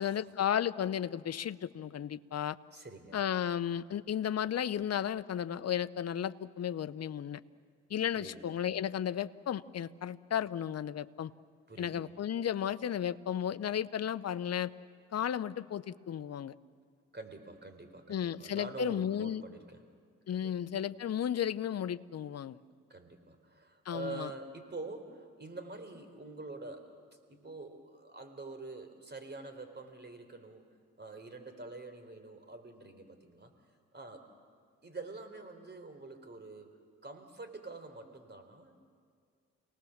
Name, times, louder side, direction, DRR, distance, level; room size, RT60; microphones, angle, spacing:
voice 1, 0.0-2.6 3.1-7.4 7.9-11.3 11.8-14.7 15.1-16.5 18.1-19.4 20.3-22.6 23.8-24.3, left 9 dB, 50° left, 14 dB, 0.9 m, -34 dB
voice 2, 2.7-3.2 8.1-8.6 11.7-12.0 17.1-19.8 20.3-20.6 22.9-26.9 27.3-30.6 31.0-33.5 33.9-34.2 34.8-38.8, right 3 dB, 30° right, 7 dB, 4.2 m, -46 dB
29.5 x 19.0 x 7.3 m, 2.1 s
hypercardioid pair, 50°, 33 cm